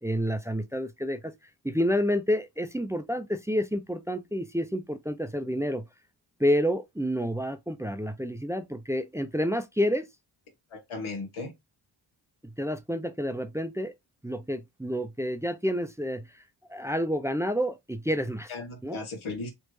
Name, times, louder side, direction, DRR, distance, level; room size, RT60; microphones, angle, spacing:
voice 1, 0.0-1.3 1.6-5.8 6.4-10.1 12.6-13.9 14.2-16.3 16.7-18.5 18.8-19.0, equal, 5° right, 0.4 m, -29 dB
voice 2, 10.7-11.5 18.5-19.5, left 3 dB, 85° left, 1.3 m, -36 dB
3.3 x 2.5 x 3.1 m
cardioid pair, 60°, 48 cm